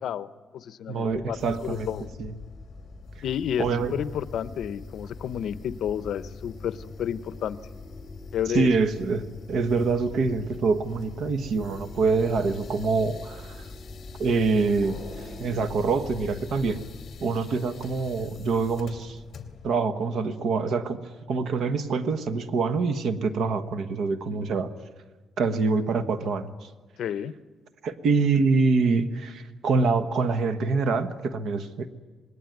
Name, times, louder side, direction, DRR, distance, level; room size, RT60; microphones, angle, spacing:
voice 1, 0.0-2.0 3.2-7.6 8.3-8.7 27.0-27.3, left 9 dB, 65° left, 14 dB, 0.8 m, -31 dB
voice 2, 0.9-1.9 2.2-2.3 3.2-3.3 3.6-3.9 8.5-13.7 14.2-16.8 17.2-19.2 19.6-24.7 25.4-26.7 27.8-31.9, right 4 dB, 60° right, 11 dB, 1.3 m, -25 dB
sound 1, 1.1-17.2, left 2 dB, 5° right, 4.7 m, -44 dB
sound 2, 1.4-19.8, left 6 dB, 40° left, 2.5 m, -46 dB
27.0 x 20.0 x 9.5 m, 1.3 s
cardioid pair, 165°, 0 cm